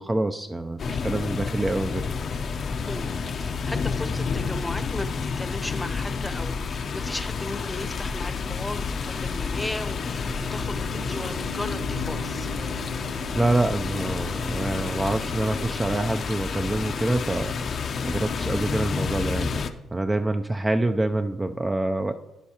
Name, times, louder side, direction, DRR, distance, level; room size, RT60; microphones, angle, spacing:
voice 1, 0.0-2.1 13.3-17.5 18.0-19.6 19.9-22.1, right 2 dB, 15° right, 7 dB, 0.4 m, -26 dB
sound 1, 0.8-19.7, left 5 dB, 50° left, 0.6 m, -30 dB
voice 2, 3.4-12.5, left 1 dB, 10° left, 10 dB, 0.8 m, -36 dB
Piano, 10.2-17.7, right 5 dB, 90° right, 0.5 m, -44 dB
15.0 x 5.2 x 2.9 m, 1.1 s
cardioid pair, 90°, 0 cm